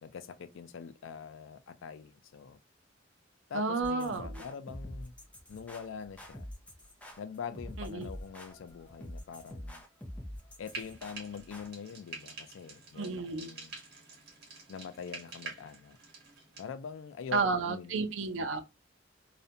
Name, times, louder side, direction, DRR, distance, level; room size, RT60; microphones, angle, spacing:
voice 1, 0.0-2.6 3.5-5.1 5.5-6.5 7.2-9.8 10.6-13.7 14.7-16.0 16.6-18.1, left 6 dB, 80° left, 0.3 m, -44 dB
voice 2, 3.5-4.4 7.8-8.1 12.9-13.5 17.3-18.6, right 4 dB, 75° right, 0.5 m, -32 dB
sound 1, 3.8-11.7, equal, 5° left, 0.5 m, -45 dB
Frying (food), 10.6-16.7, right 4 dB, 55° right, 1.0 m, -47 dB
2.5 x 2.1 x 2.6 m
head